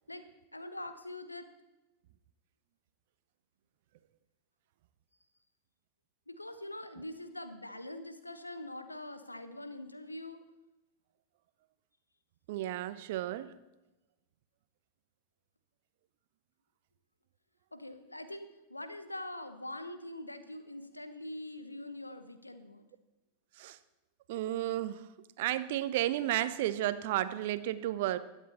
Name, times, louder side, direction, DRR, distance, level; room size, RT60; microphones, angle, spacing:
voice 1, 0.5-1.5 6.3-10.4 17.7-22.9, left 1 dB, 85° left, 10 dB, 1.1 m, -43 dB
voice 2, 12.5-13.5 23.6-23.8 24.3-25.0 25.4-28.2, right 13 dB, 50° right, 14 dB, 0.7 m, -32 dB
20.5 x 8.3 x 4.2 m, 1.0 s
figure-of-eight pair, 90°, 0 cm